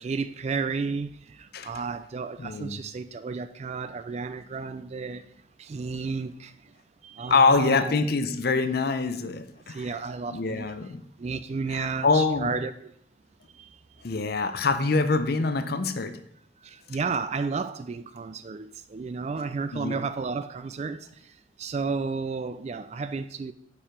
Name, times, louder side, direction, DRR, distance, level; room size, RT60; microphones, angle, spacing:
voice 1, 0.0-5.2 5.6-6.7 7.0-7.9 9.7-10.7 11.2-12.9 13.5-13.8 16.6-23.5, right 4 dB, 35° right, 0.3 m, -32 dB
voice 2, 2.4-2.8 7.3-9.9 10.3-11.0 11.7-12.5 14.0-16.2 19.7-20.0, left 4 dB, 50° left, 0.6 m, -25 dB
7.3 x 4.6 x 5.1 m
head